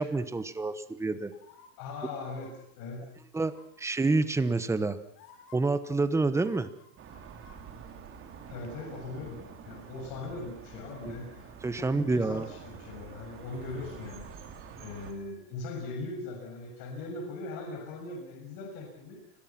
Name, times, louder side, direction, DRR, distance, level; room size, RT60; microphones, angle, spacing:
voice 1, 0.0-1.3 3.3-3.5 3.8-5.0 5.5-6.7 11.0-11.1 11.6-12.5, right 3 dB, 5° right, 12 dB, 1.0 m, -28 dB
sound 1, 1.3-1.7 2.3-2.5 3.4-3.8 4.7-4.8 5.1-5.6 6.3-7.6 7.9-8.0, left 6 dB, 80° left, 7.2 m, -56 dB
voice 2, 1.8-3.1 8.5-14.3 14.8-19.2, left 3 dB, 45° left, 1 dB, 6.7 m, -40 dB
sound 2, 7.0-15.1, right 6 dB, 25° right, 3.6 m, -47 dB
29.0 x 22.0 x 5.9 m, 0.68 s
supercardioid pair, 160°, 46 cm